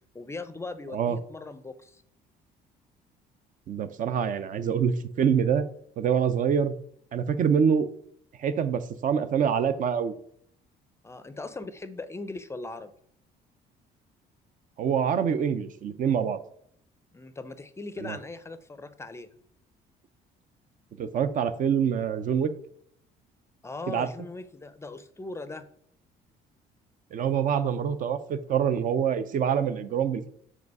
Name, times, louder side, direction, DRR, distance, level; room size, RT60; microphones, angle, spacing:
voice 1, 0.1-2.0 11.0-12.9 17.1-19.3 23.6-25.7, left 3 dB, 15° left, 12 dB, 0.5 m, -39 dB
voice 2, 3.7-5.6 6.0-6.8 7.1-7.9 8.4-10.1 14.8-16.4 18.0-18.2 21.0-22.5 23.9-24.1 27.1-30.3, right 7 dB, 50° right, 11 dB, 0.5 m, -25 dB
4.9 x 4.9 x 4.7 m, 0.66 s
cardioid pair, 110°, 17 cm